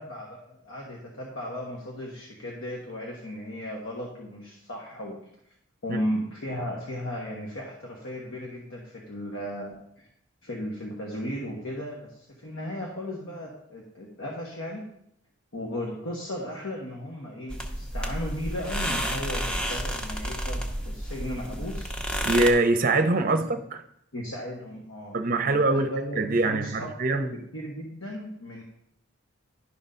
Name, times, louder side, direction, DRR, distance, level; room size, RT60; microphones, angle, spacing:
voice 1, 0.0-5.3 5.8-10.1 10.4-14.9 15.5-21.9 23.3-23.4 24.1-28.6, equal, 70° left, 1.3 m, -36 dB
sound 1, 17.5-22.5, equal, 5° left, 0.7 m, -31 dB
voice 2, 22.2-23.8 25.1-27.3, right 2 dB, 40° right, 0.7 m, -24 dB
11.0 x 3.9 x 5.5 m
head